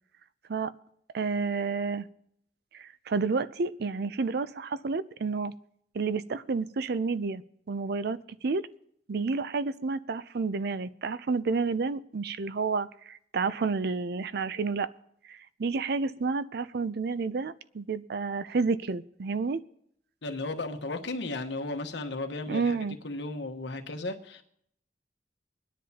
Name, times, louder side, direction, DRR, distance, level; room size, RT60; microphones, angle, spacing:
voice 1, 1.1-2.1 2.7-5.5 5.9-7.4 7.7-8.7 9.1-14.9 15.3-19.6 22.5-23.0, right 4 dB, 60° right, 15 dB, 0.5 m, -30 dB
voice 2, 20.2-22.8 23.0-24.4, left 2 dB, 85° left, 6 dB, 1.2 m, -35 dB
24.0 x 10.0 x 2.8 m, 0.71 s
head